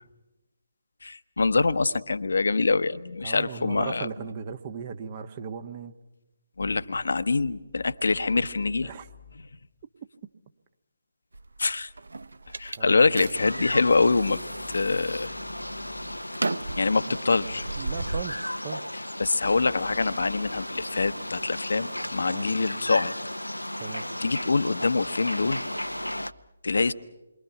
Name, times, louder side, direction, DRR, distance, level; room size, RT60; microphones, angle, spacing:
voice 1, 1.0-4.1 6.6-8.9 11.6-11.9 12.6-14.4 14.7-15.3 16.8-17.7 19.2-23.1 24.2-25.6 26.6-26.9, left 3 dB, 60° left, 13 dB, 1.0 m, -25 dB
voice 2, 3.2-5.9 8.8-9.1 12.8-13.0 17.7-18.8 22.2-22.5 23.8-24.1, right 6 dB, 30° right, 9 dB, 1.4 m, -37 dB
sound 1, 11.3-14.1 14.6-15.1 15.5-18.2, right 2 dB, 65° right, 1.0 m, -35 dB
sound 2, 13.3-26.3, left 1 dB, 90° left, 0.8 m, -35 dB
28.5 x 23.5 x 5.9 m, 0.99 s
figure-of-eight pair, 145°, 0 cm